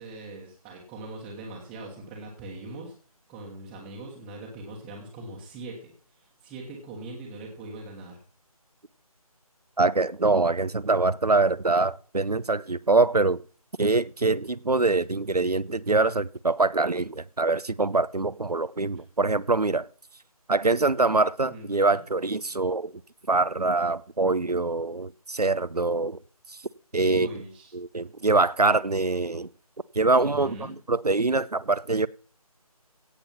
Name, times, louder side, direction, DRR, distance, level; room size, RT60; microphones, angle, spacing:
voice 1, 0.0-2.9 3.3-5.9 6.2-8.2 21.5-22.0 27.0-27.7 28.0-28.1 30.1-30.7, right 2 dB, 5° right, 1.3 m, -41 dB
voice 2, 9.8-13.4 13.8-19.9 20.5-22.9 23.3-26.2 26.5-26.6 26.9-27.3 27.7-29.5 29.9-32.1, right 3 dB, 90° right, 0.8 m, -24 dB
17.0 x 7.0 x 5.8 m
figure-of-eight pair, 160°, 19 cm